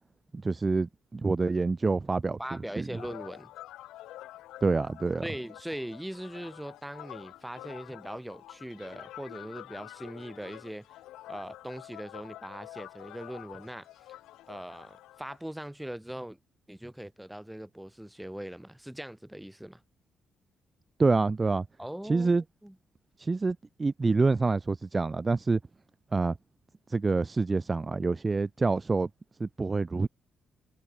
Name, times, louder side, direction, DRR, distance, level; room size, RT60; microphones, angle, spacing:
voice 1, 0.3-2.4 2.8-2.9 4.6-5.2 21.0-21.7 22.0-22.4 23.2-25.6 26.1-26.4 26.9-29.1 29.4-30.1, right 3 dB, 25° right, 0.7 m, -27 dB
voice 2, 2.4-3.5 5.2-10.9 11.3-14.2 14.5-16.4 16.7-19.8 21.8-22.3 22.6-22.7, right 1 dB, 5° right, 2.3 m, -40 dB
sound 1, 2.9-15.4, left 15 dB, 90° left, 1.2 m, -48 dB
cardioid pair, 90°, 0 cm